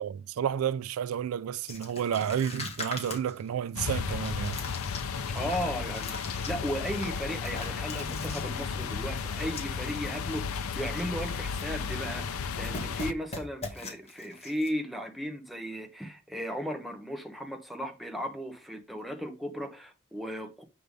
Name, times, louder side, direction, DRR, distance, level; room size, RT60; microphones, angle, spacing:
voice 1, 0.0-4.6, right 8 dB, 85° right, 0.3 m, -31 dB
sound 1, 1.7-10.0 10.3-10.4 10.7-11.0 11.3-12.1 12.3-14.7, left 3 dB, 30° left, 1.7 m, -42 dB
sound 2, 3.8-13.1, left 5 dB, 85° left, 0.5 m, -34 dB
voice 2, 5.3-20.6, equal, ahead, 1.0 m, -36 dB
8.0 x 3.4 x 5.2 m
head